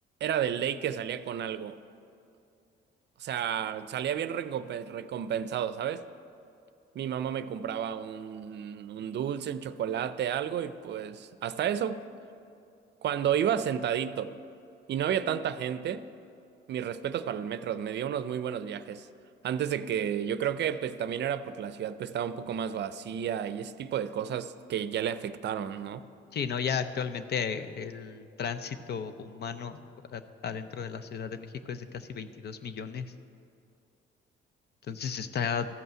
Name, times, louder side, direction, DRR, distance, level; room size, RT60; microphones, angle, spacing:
voice 1, 0.2-1.8 3.2-6.0 6.9-12.0 13.0-14.4 14.9-16.0 16.7-19.1 19.4-26.0, right 9 dB, 60° right, 13 dB, 0.5 m, -31 dB
voice 2, 26.3-29.8 30.1-33.1 34.9-35.7, left 7 dB, 55° left, 10 dB, 0.7 m, -34 dB
14.0 x 5.5 x 7.5 m, 2.6 s
cardioid pair, 90°, 20 cm